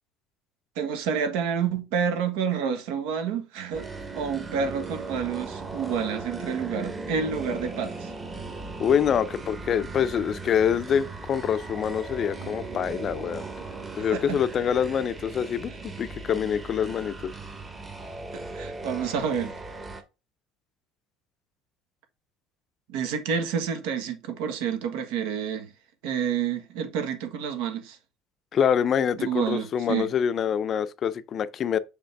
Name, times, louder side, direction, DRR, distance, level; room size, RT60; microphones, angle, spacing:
voice 1, 0.7-3.9 4.1-8.1 14.1-14.4 18.3-19.5 22.9-25.7 26.0-28.0 29.2-30.1, right 7 dB, 90° right, 1.5 m, -29 dB
sound 1, 3.7-20.0, right 3 dB, 15° right, 0.9 m, -38 dB
voice 2, 8.8-13.4 14.0-17.3 28.5-31.8, left 8 dB, 30° left, 0.5 m, -25 dB
6.5 x 5.2 x 3.4 m
cardioid pair, 165°, 0 cm